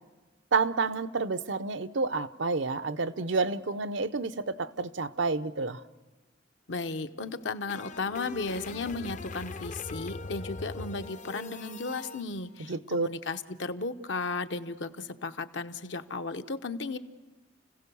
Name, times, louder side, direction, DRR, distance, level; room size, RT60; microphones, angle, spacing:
voice 1, 0.5-5.8 12.7-13.1, right 4 dB, 75° right, 0.7 m, -29 dB
voice 2, 6.7-17.0, left 3 dB, 70° left, 0.9 m, -35 dB
sound 1, 7.3-12.2, left 3 dB, 40° left, 0.6 m, -41 dB
30.0 x 16.0 x 7.0 m
head